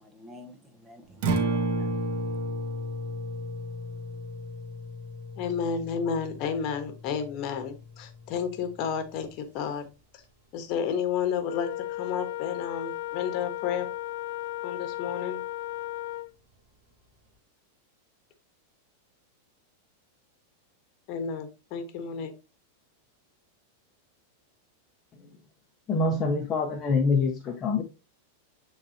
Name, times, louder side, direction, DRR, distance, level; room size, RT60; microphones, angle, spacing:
voice 1, 0.0-2.2, left 2 dB, 10° right, 1.3 m, -50 dB
Acoustic guitar, 1.1-9.3, right 1 dB, 55° right, 1.7 m, -33 dB
voice 2, 5.4-9.9 10.1-10.2 10.5-13.9 14.6-15.4 21.1-22.3, left 7 dB, 45° left, 1.3 m, -31 dB
Wind instrument woodwind instrument, 11.5-16.3, left 17 dB, 70° left, 0.4 m, -35 dB
voice 3, 25.9-27.8, left 3 dB, 25° left, 1.0 m, -25 dB
9.8 x 4.0 x 2.9 m
supercardioid pair, 140°, 0 cm